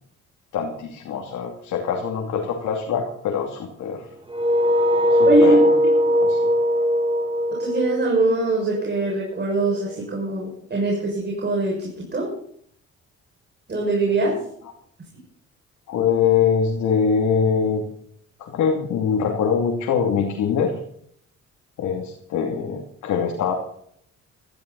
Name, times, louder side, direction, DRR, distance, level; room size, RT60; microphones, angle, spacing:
voice 1, 0.5-4.0 5.1-5.7 6.2-6.4 15.9-17.9 18.4-20.7 21.8-23.5, left 6 dB, 80° left, 1 dB, 2.8 m, -23 dB
sound 1, 4.3-9.1, equal, 15° right, 4.0 m, -20 dB
voice 2, 5.2-5.6 7.6-12.3 13.7-14.4, right 2 dB, 35° right, -2 dB, 6.4 m, -22 dB
17.0 x 14.5 x 4.2 m, 0.64 s
cardioid pair, 90°, 30 cm